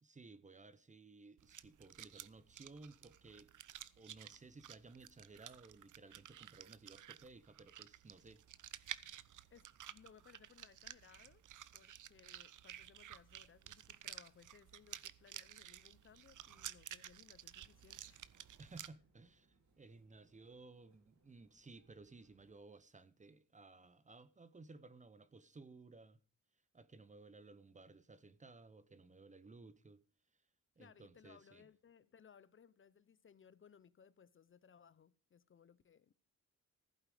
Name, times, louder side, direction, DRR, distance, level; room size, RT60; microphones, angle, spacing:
voice 1, 0.0-3.5 4.0-8.4 18.6-26.2 26.7-30.0 30.8-31.7, right 3 dB, 25° right, 0.8 m, -58 dB
sound 1, 1.4-18.9, right 11 dB, 80° right, 0.7 m, -53 dB
voice 2, 9.5-11.4 11.7-18.3 30.8-36.1, left 7 dB, 40° left, 0.6 m, -64 dB
sound 2, 17.5-22.5, right 3 dB, 65° right, 3.3 m, -75 dB
15.5 x 8.9 x 4.9 m
wide cardioid pair, 170°, 31 cm